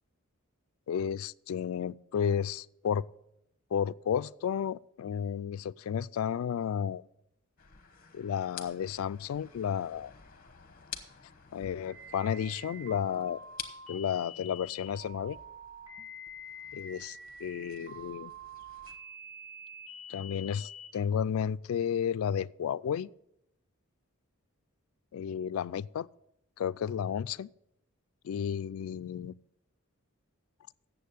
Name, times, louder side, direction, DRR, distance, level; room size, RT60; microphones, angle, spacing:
voice 1, 0.9-3.0 3.7-7.0 8.1-10.1 11.5-13.4 13.9-15.4 16.7-18.3 20.1-23.1 25.1-26.1 26.6-27.5 28.2-29.3, left 8 dB, 75° left, 0.3 m, -32 dB
sound 1, 7.6-19.0, left 8 dB, 40° left, 1.0 m, -50 dB
sound 2, 11.9-20.9, equal, 80° right, 3.4 m, -47 dB
8.5 x 7.1 x 8.2 m
head